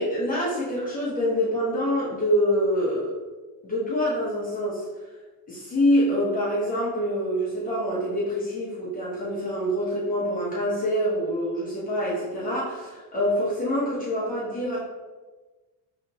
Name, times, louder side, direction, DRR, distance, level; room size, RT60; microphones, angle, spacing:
voice 1, 0.0-3.1 3.6-4.9 5.5-14.8, equal, 20° left, -7 dB, 0.9 m, -25 dB
4.9 x 3.0 x 2.8 m, 1.3 s
cardioid pair, 160°, 46 cm